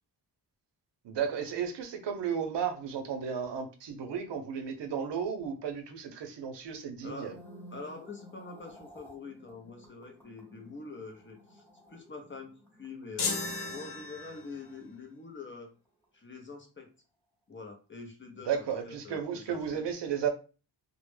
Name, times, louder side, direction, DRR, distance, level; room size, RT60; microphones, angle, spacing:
voice 1, 1.0-7.3 18.5-20.3, right 7 dB, 75° right, 0.6 m, -34 dB
voice 2, 7.0-7.3 7.7-13.4 13.7-15.7 16.1-16.9 17.5-19.8, left 4 dB, 30° left, 0.5 m, -45 dB
sound 1, 7.0-15.4 15.7-16.0, equal, 5° left, 0.8 m, -55 dB
sound 2, 13.2-14.7, left 3 dB, 65° left, 0.7 m, -35 dB
2.1 x 2.0 x 3.1 m
wide cardioid pair, 105°, 42 cm